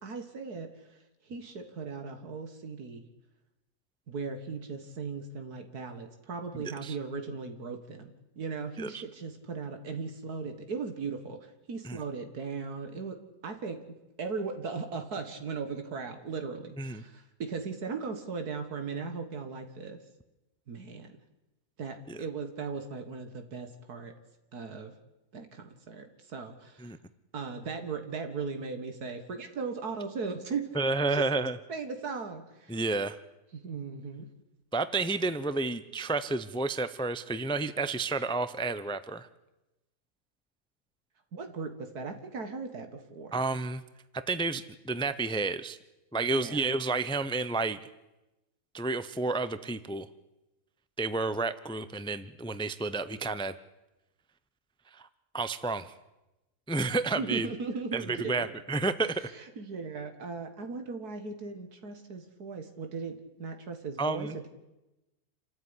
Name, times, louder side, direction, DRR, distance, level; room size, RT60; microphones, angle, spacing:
voice 1, 0.0-3.0 4.1-13.2 13.4-20.0 20.7-21.2 21.8-24.1 24.5-24.9 25.3-26.9 27.3-30.7 31.1-31.2 31.7-32.8 33.5-34.3 41.3-43.3 46.3-46.6 57.1-58.5 59.2-64.5, right 4 dB, 90° right, 6 dB, 2.3 m, -38 dB
voice 2, 6.6-6.9 8.8-9.0 11.8-12.0 16.8-17.0 22.1-22.2 26.8-27.0 30.7-31.6 32.7-33.2 34.7-39.3 43.3-43.8 44.3-45.8 46.1-47.8 48.7-50.1 51.0-53.5 54.9-55.1 55.3-55.9 56.7-57.5 57.9-59.3 64.0-64.3, right 3 dB, 5° left, 13 dB, 0.6 m, -30 dB
27.5 x 14.0 x 9.9 m, 0.98 s
omnidirectional pair, 1.6 m